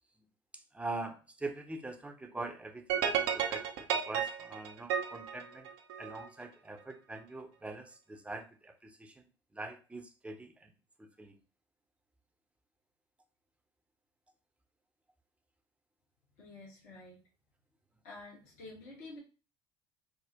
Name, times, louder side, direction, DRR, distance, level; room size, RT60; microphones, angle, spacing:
voice 1, 0.7-5.7 6.0-9.3 9.5-10.7 11.0-11.4, right 2 dB, 10° right, 5 dB, 0.6 m, -43 dB
sound 1, 2.9-6.3, right 8 dB, 65° right, 0.5 m, -33 dB
voice 2, 16.4-17.2 18.0-19.2, left 2 dB, 65° left, -4 dB, 1.3 m, -49 dB
3.4 x 2.1 x 2.8 m, 0.34 s
hypercardioid pair, 65°, 14 cm